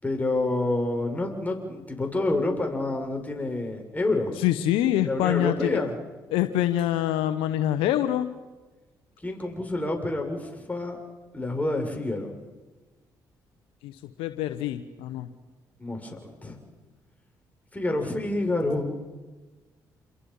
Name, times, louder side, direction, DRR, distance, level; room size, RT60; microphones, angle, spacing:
voice 1, 0.0-4.3 5.1-5.9 9.2-11.0 11.3-12.3 15.8-16.6 17.7-19.0, left 2 dB, 15° left, 2 dB, 6.5 m, -28 dB
voice 2, 4.4-5.8 6.3-8.3 13.8-15.3, left 12 dB, 85° left, 10 dB, 1.1 m, -25 dB
28.0 x 22.5 x 5.6 m, 1.2 s
supercardioid pair, 60°, 9 cm